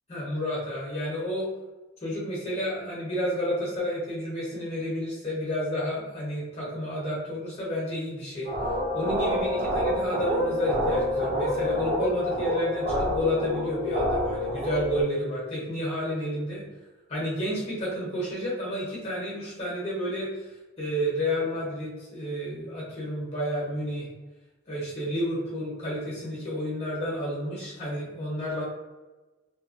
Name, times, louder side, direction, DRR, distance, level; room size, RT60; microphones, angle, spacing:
voice 1, 0.1-1.5 2.0-8.5 8.9-16.6 17.1-20.5 20.8-24.1 24.7-28.6, equal, 30° left, -6 dB, 0.9 m, -30 dB
sound 1, 8.4-15.0, left 1 dB, 35° right, 0.4 m, -27 dB
2.8 x 2.1 x 2.5 m, 1.2 s
head